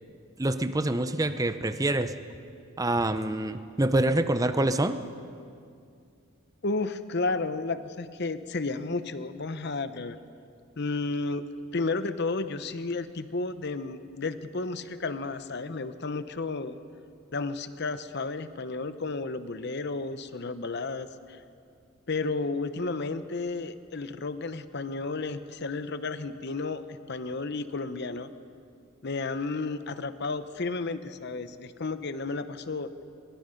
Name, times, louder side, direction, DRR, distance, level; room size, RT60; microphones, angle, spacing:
voice 1, 0.4-2.1 2.8-5.0, right 1 dB, 15° right, 10 dB, 0.7 m, -26 dB
voice 2, 6.6-10.2 10.8-11.4 11.7-16.8 17.3-21.4 22.1-28.3 29.0-32.9, left 3 dB, 55° left, 11 dB, 0.8 m, -32 dB
22.5 x 22.0 x 5.3 m, 2.4 s
head